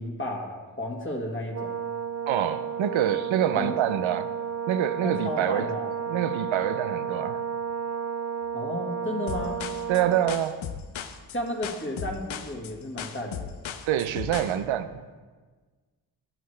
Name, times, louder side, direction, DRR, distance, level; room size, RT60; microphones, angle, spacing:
voice 1, 0.0-1.8 3.5-3.8 5.0-5.9 8.5-9.6 11.3-13.5, left 1 dB, 25° left, -1 dB, 1.8 m, -33 dB
Brass instrument, 1.5-10.4, right 7 dB, 35° right, 0.4 m, -32 dB
voice 2, 2.3-4.3 4.7-5.7 6.1-7.4 9.9-10.6 13.8-15.2, right 10 dB, 90° right, 12 dB, 0.7 m, -26 dB
sound 1, 9.3-14.6, left 8 dB, 85° left, 0.8 m, -36 dB
13.5 x 9.4 x 3.3 m, 1.4 s
cardioid pair, 85°, 46 cm